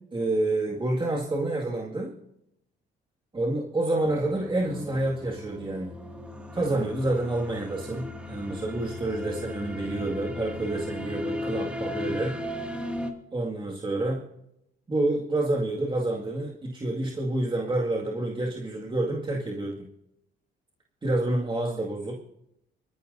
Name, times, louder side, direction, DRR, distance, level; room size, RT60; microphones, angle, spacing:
voice 1, 0.1-2.1 3.3-6.0 6.5-12.4 13.3-14.2 14.9-19.9 21.0-22.1, right 2 dB, 25° right, -1 dB, 2.1 m, -28 dB
sound 1, 4.0-13.1, left 1 dB, 5° right, 2.2 m, -36 dB
25.0 x 14.5 x 2.7 m, 0.82 s
cardioid pair, 90°, 20 cm